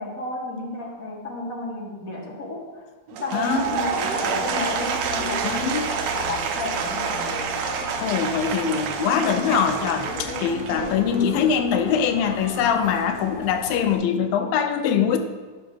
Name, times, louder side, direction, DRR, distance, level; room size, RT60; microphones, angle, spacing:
voice 1, 0.0-2.8 3.1-5.5 5.7-7.5, left 2 dB, 40° left, -3 dB, 1.2 m, -32 dB
Applause / Crowd, 3.1-11.3, right 6 dB, 85° right, 1.5 m, -28 dB
voice 2, 3.3-3.7 5.4-5.9 8.0-15.2, left 7 dB, 85° left, 7 dB, 2.5 m, -23 dB
sound 1, 3.5-14.0, left 1 dB, 60° left, 3.3 m, -36 dB
10.0 x 6.2 x 4.6 m, 1.4 s
omnidirectional pair, 4.1 m